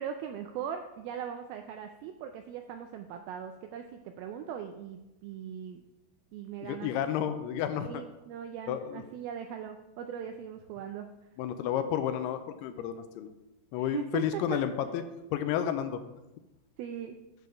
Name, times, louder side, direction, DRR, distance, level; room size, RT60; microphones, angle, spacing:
voice 1, 0.0-5.8 6.3-6.9 7.8-11.1 13.7-14.6 16.8-17.2, right 8 dB, 85° right, 5 dB, 2.1 m, -39 dB
voice 2, 6.6-8.0 8.7-9.0 11.4-13.3 13.7-15.0 15.3-16.0, left 9 dB, 85° left, 9 dB, 2.5 m, -31 dB
8.1 x 6.7 x 5.0 m, 0.98 s
omnidirectional pair, 4.8 m